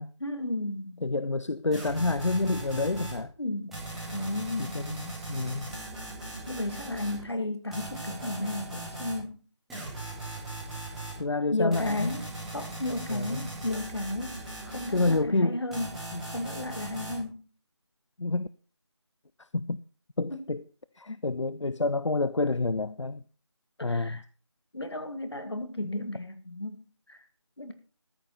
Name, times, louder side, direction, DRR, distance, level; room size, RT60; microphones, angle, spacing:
voice 1, 0.2-1.0 3.4-3.8 4.1-4.8 6.5-9.4 11.5-14.4 14.7-17.4 20.3-20.4 23.9-24.2 24.7-26.8 27.1-27.2 27.6-27.7, left 2 dB, 60° left, 1.9 m, -33 dB
voice 2, 1.0-3.3 4.6-5.7 11.2-12.1 13.1-13.5 14.9-15.6 16.1-16.3 18.2-18.5 19.4-19.8 20.2-20.6 21.0-23.2 23.8-24.2, left 3 dB, 75° left, 0.6 m, -28 dB
sound 1, 1.7-3.2 3.7-7.2 7.7-9.2 9.7-11.2 11.7-15.2 15.7-17.2, right 2 dB, ahead, 1.7 m, -39 dB
13.5 x 7.5 x 5.6 m
figure-of-eight pair, 170°, 15 cm